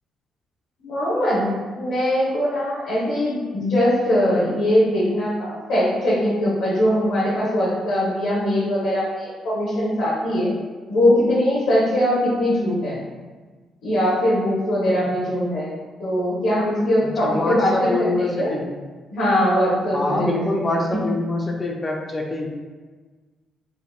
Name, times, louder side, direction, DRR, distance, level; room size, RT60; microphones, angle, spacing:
voice 1, 0.8-10.5 10.9-13.0 13.8-17.9 18.2-18.5 19.1-20.4 20.7-21.0, left 1 dB, 80° left, -9 dB, 0.8 m, -21 dB
voice 2, 17.0-18.7 19.9-22.5, left 2 dB, 25° left, 0 dB, 0.4 m, -25 dB
3.4 x 2.1 x 2.3 m, 1.4 s
cardioid pair, 90°, 0 cm